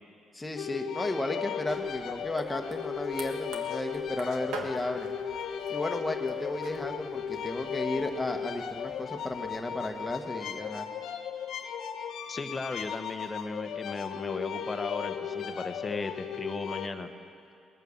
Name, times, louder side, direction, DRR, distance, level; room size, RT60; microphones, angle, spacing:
voice 1, 0.3-5.1 5.7-10.9, left 2 dB, 15° left, 4 dB, 1.4 m, -34 dB
sound 1, 0.5-16.9, left 8 dB, 70° left, 0.8 m, -36 dB
sound 2, 1.6-10.2, right 4 dB, 90° right, 1.4 m, -47 dB
voice 2, 12.3-17.1, left 3 dB, 30° left, 8 dB, 1.0 m, -36 dB
20.0 x 9.1 x 7.2 m, 2.6 s
cardioid pair, 90°, 0 cm